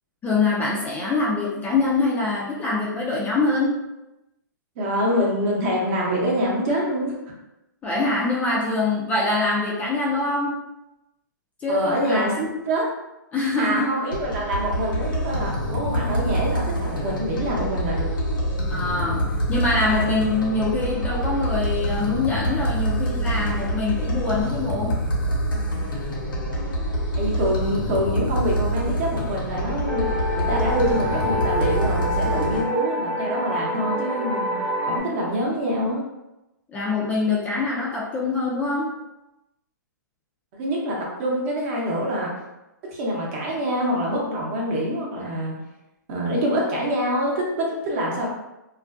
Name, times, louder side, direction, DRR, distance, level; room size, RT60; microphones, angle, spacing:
voice 1, 0.2-3.8 7.8-10.6 11.6-12.4 13.3-13.9 18.7-25.0 32.2-32.7 36.7-38.9, left 3 dB, 15° left, -4 dB, 0.3 m, -24 dB
voice 2, 4.8-7.1 11.7-12.9 13.6-18.1 27.2-30.1 30.4-34.5 34.9-36.0 40.5-42.3 42.9-45.6 46.1-48.3, equal, 40° right, -2 dB, 0.8 m, -25 dB
sound 1, 14.1-32.6, equal, 90° left, 0.8 m, -26 dB
sound 2, 29.9-35.0, left 1 dB, 75° right, 0.8 m, -27 dB
2.4 x 2.2 x 2.5 m, 0.95 s
hypercardioid pair, 140°, 11 cm